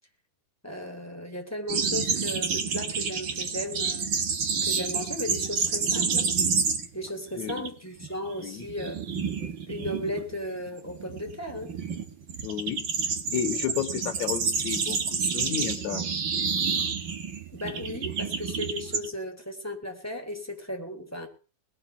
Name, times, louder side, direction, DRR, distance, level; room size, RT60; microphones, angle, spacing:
voice 1, 0.6-4.1 4.6-6.4 6.9-9.0 9.7-11.8 17.5-21.3, left 1 dB, 5° left, 4 dB, 3.0 m, -35 dB
sound 1, 1.7-7.1 7.3-7.7 8.0-19.1, right 5 dB, 40° right, 2.0 m, -29 dB
voice 2, 12.4-12.9 13.3-16.0, left 9 dB, 60° left, 6 dB, 2.8 m, -32 dB
20.0 x 7.5 x 8.5 m, 0.39 s
omnidirectional pair, 4.0 m